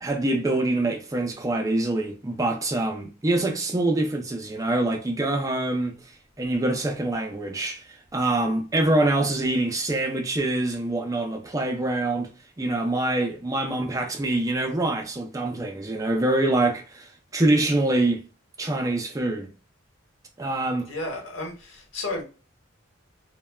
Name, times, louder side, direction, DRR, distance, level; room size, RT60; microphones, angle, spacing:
voice 1, 0.0-5.9 6.4-12.3 12.6-18.2 18.6-19.5 20.4-20.9, right 2 dB, 15° right, 0.4 m, -25 dB
voice 2, 20.9-22.2, left 2 dB, 75° left, 1.0 m, -32 dB
3.2 x 2.1 x 2.2 m
head